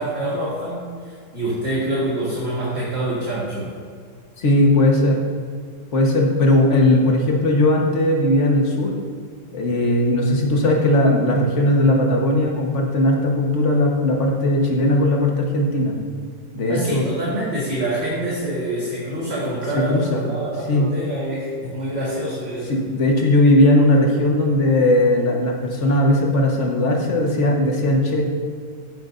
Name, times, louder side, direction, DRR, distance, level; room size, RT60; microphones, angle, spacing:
voice 1, 0.0-3.7 16.7-22.8, right 1 dB, 40° right, -7 dB, 2.0 m, -26 dB
voice 2, 4.4-5.2 5.9-9.0 9.5-15.9 16.5-17.0 19.9-20.2 20.7-20.9 22.7-28.2, left 1 dB, 50° left, 0 dB, 1.6 m, -18 dB
14.5 x 8.0 x 2.6 m, 2.1 s
omnidirectional pair, 1.7 m